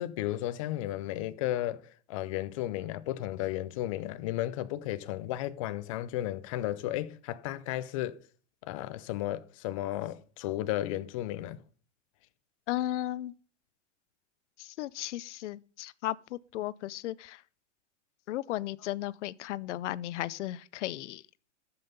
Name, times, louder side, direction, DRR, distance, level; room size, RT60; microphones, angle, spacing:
voice 1, 0.0-8.2 8.6-11.6, left 14 dB, 30° left, 0.4 m, -34 dB
voice 2, 12.7-13.3 14.6-17.4 18.3-21.2, left 14 dB, 75° left, 0.6 m, -35 dB
13.5 x 5.7 x 5.2 m
supercardioid pair, 165°, 36 cm